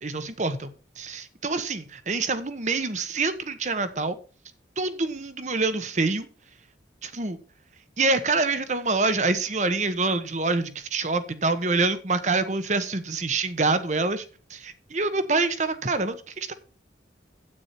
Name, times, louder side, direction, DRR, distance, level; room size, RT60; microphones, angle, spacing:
voice 1, 0.0-0.7 1.0-4.2 4.8-6.3 7.0-7.4 8.0-14.2 14.5-16.5, right 3 dB, 40° right, 11 dB, 1.1 m, -26 dB
9.8 x 8.8 x 4.3 m, 0.37 s
head